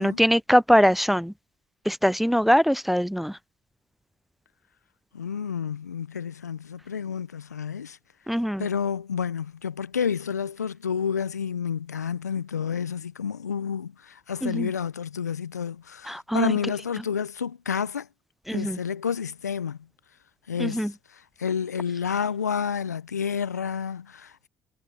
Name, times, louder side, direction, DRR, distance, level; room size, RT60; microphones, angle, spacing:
voice 1, 0.0-1.3 1.9-3.3 8.3-8.6 14.4-14.7 16.1-16.5 18.5-18.8 20.6-20.9, equal, ahead, 0.5 m, -22 dB
voice 2, 5.1-8.0 8.6-18.1 18.5-19.8 20.5-24.5, left 7 dB, 90° left, 0.8 m, -30 dB
figure-of-eight pair, 50°, 9 cm